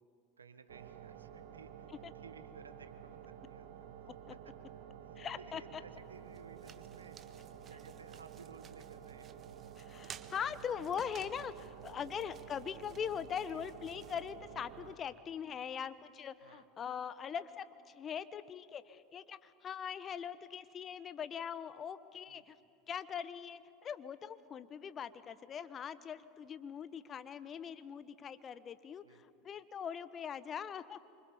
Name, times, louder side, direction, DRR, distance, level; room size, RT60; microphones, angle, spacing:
voice 1, 0.4-4.5 5.0-9.3 13.5-13.7 16.4-16.7 22.3-22.5 29.0-29.2, right 4 dB, 85° right, 10 dB, 1.6 m, -57 dB
sound 1, 0.7-14.9, right 9 dB, 65° right, 1.8 m, -51 dB
voice 2, 5.2-5.8 9.8-11.5 11.8-22.6 22.9-31.0, left 8 dB, 35° left, 14 dB, 1.2 m, -41 dB
sound 2, 5.9-14.9, right 8 dB, 35° right, 1.6 m, -57 dB
27.5 x 25.0 x 7.2 m, 2.4 s
hypercardioid pair, 80°, 0 cm